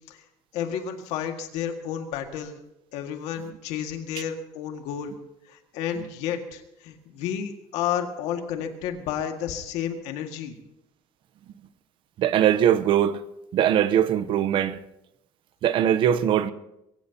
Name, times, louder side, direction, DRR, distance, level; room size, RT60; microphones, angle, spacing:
voice 1, 0.5-2.6 2.9-5.2 5.5-10.6, left 9 dB, 85° left, 2.0 m, -31 dB
voice 2, 12.2-13.2 13.5-14.8 15.6-16.5, right 10 dB, 50° right, 0.8 m, -21 dB
22.5 x 17.0 x 2.9 m
cardioid pair, 155°, 11 cm